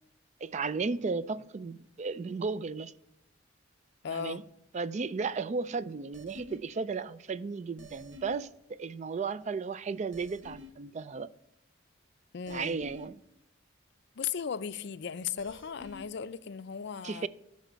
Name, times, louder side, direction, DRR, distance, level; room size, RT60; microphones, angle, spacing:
voice 1, 0.4-2.9 4.1-4.4 4.7-11.3 12.5-13.2 17.0-17.3, right 4 dB, 35° right, 0.3 m, -34 dB
voice 2, 4.0-4.4 12.3-12.8 14.2-17.3, left 7 dB, 60° left, 0.4 m, -36 dB
sound 1, 6.1-6.6 7.8-8.5 10.1-10.7 12.5-13.1 15.4-16.1, left 2 dB, 70° right, 0.9 m, -49 dB
12.5 x 4.2 x 6.7 m
head